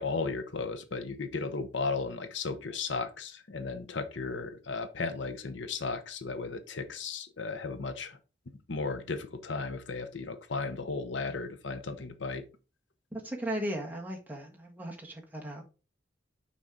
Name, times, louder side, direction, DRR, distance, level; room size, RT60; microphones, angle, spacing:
voice 1, 0.0-8.2 8.7-12.4, left 4 dB, 70° left, 9 dB, 0.8 m, -35 dB
voice 2, 13.1-15.6, right 1 dB, 10° right, 0 dB, 1.5 m, -37 dB
6.1 x 5.4 x 3.8 m, 0.32 s
head